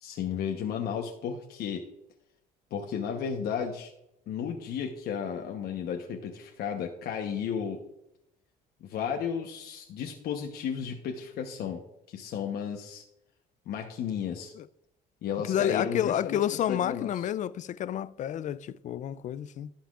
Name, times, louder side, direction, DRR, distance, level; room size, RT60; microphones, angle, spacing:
voice 1, 0.0-1.8 2.7-3.9 4.3-7.8 8.8-11.8 12.1-13.0 13.7-14.5 15.2-17.2, left 7 dB, 70° left, 1.0 m, -33 dB
voice 2, 15.5-19.7, left 10 dB, 50° left, 0.4 m, -29 dB
17.0 x 5.8 x 2.5 m
cardioid pair, 110°, 17 cm